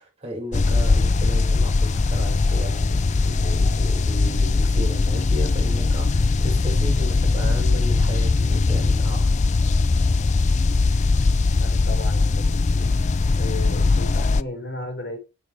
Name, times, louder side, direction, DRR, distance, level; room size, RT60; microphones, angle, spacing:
voice 1, 0.0-9.3, equal, 30° right, 7.1 m, -35 dB
sound 1, 0.5-14.4, left 3 dB, 35° left, 0.4 m, -20 dB
voice 2, 11.6-12.9 13.4-15.2, left 2 dB, 50° left, 4.2 m, -35 dB
10.5 x 7.8 x 4.6 m
head